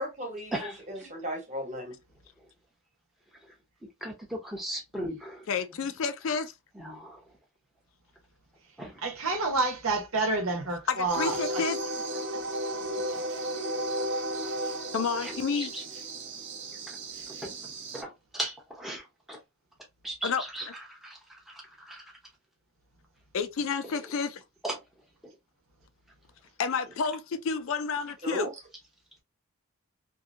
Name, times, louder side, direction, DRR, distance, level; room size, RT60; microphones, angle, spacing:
voice 1, 0.0-2.0 28.2-28.5, equal, 35° right, 1.1 m, -35 dB
voice 2, 0.5-1.1 3.4-3.5 4.0-5.5 6.7-7.2 8.8-9.0 15.2-15.8 16.9-17.0 17.3-19.4 20.0-22.0 23.8-24.0 24.6-24.8 25.2-25.3, right 1 dB, ahead, 0.7 m, -38 dB
voice 3, 5.5-6.5 10.9-11.8 14.9-15.7 20.2-20.4 23.3-24.4 26.6-28.5, left 5 dB, 65° left, 0.4 m, -30 dB
voice 4, 9.0-11.7 12.3-12.4, right 3 dB, 75° right, 1.0 m, -29 dB
sound 1, 11.1-18.0, right 1 dB, 55° right, 0.6 m, -34 dB
2.7 x 2.6 x 2.4 m
head